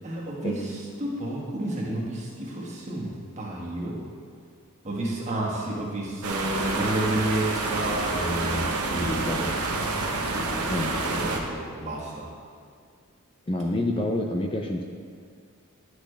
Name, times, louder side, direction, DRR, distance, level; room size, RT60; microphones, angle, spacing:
voice 1, 0.0-3.1 3.4-4.0 4.8-9.5 10.3-12.2, right 1 dB, 30° right, -4 dB, 1.6 m, -31 dB
sound 1, 6.2-11.4, right 3 dB, 90° right, 0.9 m, -28 dB
voice 2, 10.7-11.0 13.5-14.8, left 1 dB, 25° left, 2 dB, 0.4 m, -28 dB
10.0 x 6.5 x 3.4 m, 2.1 s
head